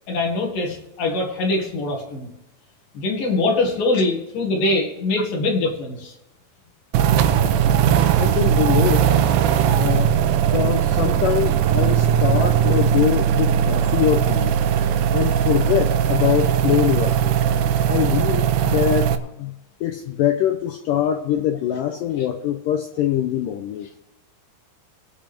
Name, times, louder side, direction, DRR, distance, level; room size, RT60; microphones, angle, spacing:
voice 1, 0.1-2.3 2.9-6.1 13.4-13.5, left 2 dB, 60° left, 0 dB, 3.4 m, -23 dB
sound 1, 6.9-19.2, right 9 dB, 90° right, 2.9 m, -19 dB
voice 2, 8.2-9.1 9.8-10.2 10.5-14.6 15.1-17.3 17.9-19.1 19.4-19.5 19.8-23.9, left 11 dB, 90° left, 6 dB, 1.9 m, -23 dB
23.0 x 8.9 x 3.6 m, 0.91 s
omnidirectional pair, 4.7 m